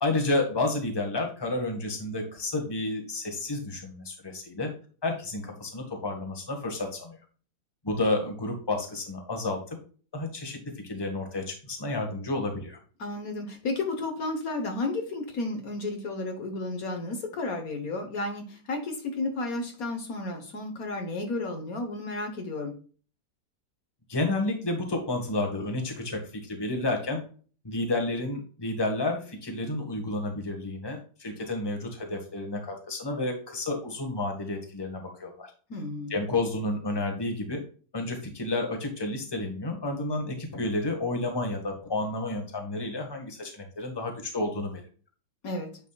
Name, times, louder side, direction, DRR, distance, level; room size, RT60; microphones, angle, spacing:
voice 1, 0.0-4.7 5.0-7.2 7.8-9.6 10.1-12.8 24.1-27.2 27.6-35.5 36.1-37.6 37.9-44.8, left 2 dB, 15° left, 3 dB, 1.5 m, -31 dB
voice 2, 13.0-22.7 35.7-36.1 45.4-45.7, left 2 dB, 60° left, 4 dB, 1.7 m, -32 dB
9.5 x 5.3 x 2.4 m, 0.40 s
omnidirectional pair, 1.7 m